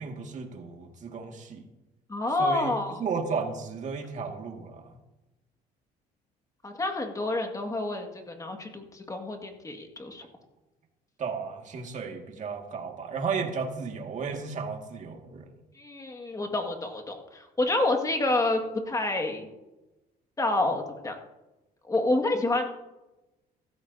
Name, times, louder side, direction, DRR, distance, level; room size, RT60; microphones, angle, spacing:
voice 1, 0.0-1.6 2.4-2.7 3.0-5.0 11.2-15.5, right 5 dB, 45° right, 3 dB, 2.1 m, -34 dB
voice 2, 2.1-3.0 6.6-10.3 15.8-19.5 20.4-21.2 21.9-22.7, left 2 dB, 20° left, 4 dB, 2.0 m, -28 dB
15.5 x 13.5 x 2.8 m, 1.0 s
cardioid pair, 110°, 17 cm